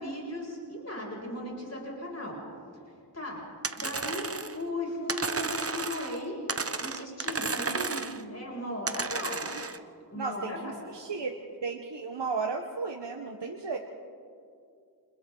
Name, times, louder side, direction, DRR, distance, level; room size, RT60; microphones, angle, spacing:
voice 1, 0.0-2.4 3.1-3.4 3.8-6.4 6.8-9.5 10.1-10.7 13.4-13.5, left 1 dB, 40° left, -3 dB, 7.0 m, -37 dB
sound 1, 3.6-4.6 5.1-6.2 6.5-8.2 8.9-9.8, right 4 dB, 35° right, 0.9 m, -33 dB
voice 2, 10.1-11.3 11.6-13.8, right 4 dB, 80° right, 2 dB, 1.3 m, -34 dB
29.5 x 28.5 x 4.0 m, 2.4 s
wide cardioid pair, 50°, 41 cm